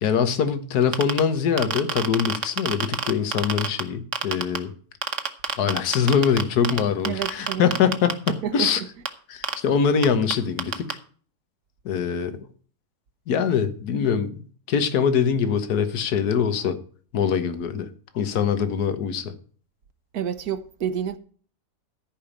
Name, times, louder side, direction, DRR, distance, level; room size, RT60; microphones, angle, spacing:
voice 1, 0.0-4.7 5.6-8.8 9.3-11.0 11.9-12.5 13.3-16.8 17.1-19.3, left 7 dB, 70° left, 1.7 m, -23 dB
sound 1, 0.8-1.2 1.6-3.8 4.1-4.6 5.0-6.8 7.0-8.3 9.1-9.2 9.4-9.5 10.0-10.1 10.3-10.4 10.6-10.9, right 6 dB, 50° right, 1.4 m, -25 dB
voice 2, 7.0-7.7 8.4-8.9 20.1-21.2, right 9 dB, 65° right, 1.4 m, -29 dB
14.0 x 5.1 x 7.3 m
omnidirectional pair, 1.8 m